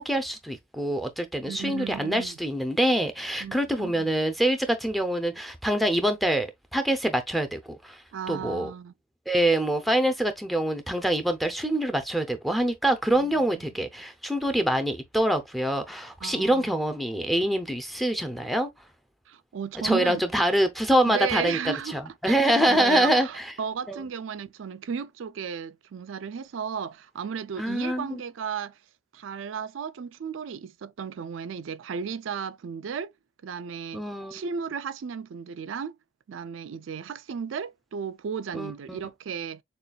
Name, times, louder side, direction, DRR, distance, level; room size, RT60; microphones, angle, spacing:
voice 1, 0.0-8.0 8.3-8.7 9.3-18.7 19.8-21.6 21.9-23.3 23.9-24.0 27.6-28.2 33.9-34.3 38.5-39.0, right 1 dB, ahead, 0.7 m, -25 dB
voice 2, 1.4-2.4 3.4-4.1 8.1-8.9 13.2-13.7 16.2-16.7 19.3-20.2 21.0-22.0 22.3-28.8 29.1-33.1 33.4-36.0 36.3-39.6, right 6 dB, 75° right, 0.4 m, -34 dB
6.6 x 2.4 x 2.3 m
head